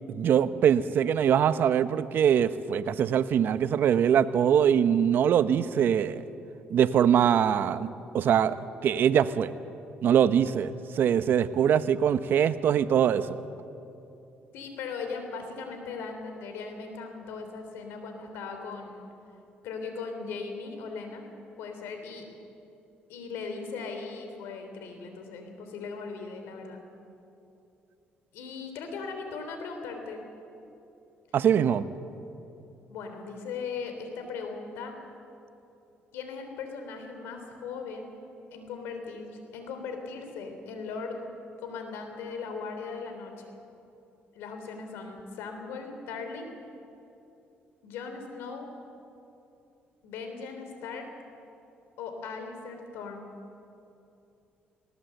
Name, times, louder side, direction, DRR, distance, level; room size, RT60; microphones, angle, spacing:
voice 1, 0.1-6.2 6.7-7.9 8.1-8.6 8.8-9.5 10.0-13.4 31.3-31.9, right 8 dB, 65° right, 13 dB, 0.8 m, -23 dB
voice 2, 14.5-19.1 19.6-21.3 21.6-22.3 23.1-26.8 28.3-30.2 32.9-34.9 36.1-38.2 38.5-41.2 41.6-43.4 44.3-46.5 47.8-48.7 50.0-51.1 52.0-53.3, left 5 dB, 85° left, 5 dB, 3.4 m, -38 dB
19.5 x 18.5 x 7.9 m, 2.8 s
cardioid pair, 85°, 4 cm